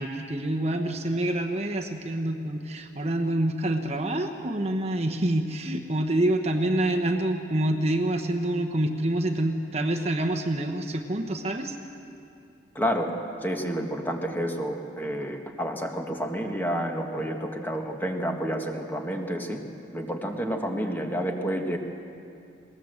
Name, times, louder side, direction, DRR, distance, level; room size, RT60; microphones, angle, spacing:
voice 1, 0.0-11.8, right 1 dB, 35° right, 4 dB, 1.1 m, -27 dB
voice 2, 12.7-13.1 13.4-19.6 19.9-21.8, equal, 10° left, 3 dB, 1.5 m, -29 dB
20.5 x 19.0 x 7.9 m, 2.6 s
head